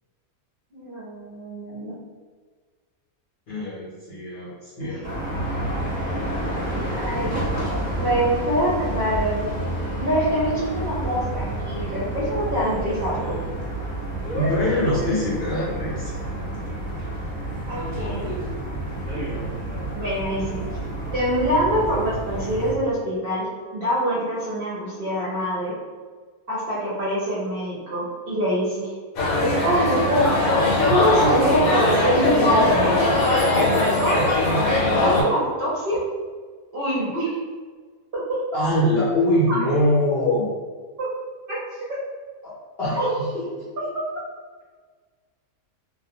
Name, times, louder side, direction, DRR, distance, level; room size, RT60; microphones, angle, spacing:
voice 1, 0.7-1.9 6.9-7.4 7.9-9.5 10.0-13.4 17.7-18.3 19.9-20.6 21.1-23.5 23.7-25.7 26.5-28.9 29.4-30.3 30.9-33.0 34.0-34.3 34.9-36.0 36.7-37.4 38.1-38.2 39.5-39.6 41.0-41.1 41.5-41.6 43.0-43.1, equal, 55° right, -8 dB, 0.7 m, -24 dB
voice 2, 3.5-5.1 14.3-16.2 38.5-40.5 42.4-42.5 42.8-43.7, left 1 dB, 60° left, -9 dB, 0.7 m, -23 dB
sound 1, 5.0-22.7, right 1 dB, 15° right, 1.0 m, -29 dB
sound 2, 29.2-35.2, left 2 dB, 75° left, 1.1 m, -20 dB
2.4 x 2.2 x 2.8 m, 1.5 s
omnidirectional pair, 1.5 m